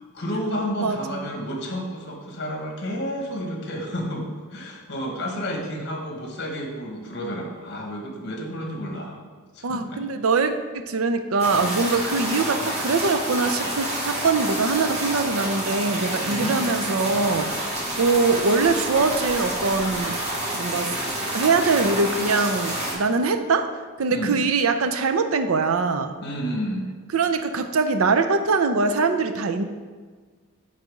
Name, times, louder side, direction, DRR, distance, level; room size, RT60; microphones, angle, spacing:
voice 1, 0.0-9.2 9.5-10.0 16.2-16.6 24.1-24.4 26.2-26.8, equal, 55° left, 1 dB, 1.4 m, -30 dB
voice 2, 9.6-17.7 18.0-20.1 20.5-20.9 21.3-23.7 24.0-26.2 27.1-29.6, right 4 dB, 80° right, 9 dB, 0.6 m, -23 dB
sound 1, 11.4-22.9, right 1 dB, 30° right, 2.0 m, -28 dB
8.4 x 4.1 x 4.9 m, 1.5 s
head